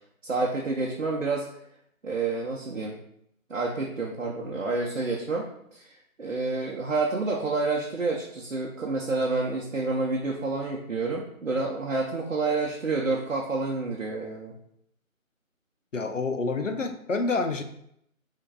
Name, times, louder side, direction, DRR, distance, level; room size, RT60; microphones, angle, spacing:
voice 1, 0.2-1.5 2.0-3.0 3.5-14.6, right 3 dB, 60° right, -2 dB, 0.7 m, -29 dB
voice 2, 15.9-17.6, left 3 dB, 60° left, 6 dB, 0.6 m, -28 dB
4.9 x 3.7 x 2.3 m, 0.73 s
figure-of-eight pair, 175°, 42 cm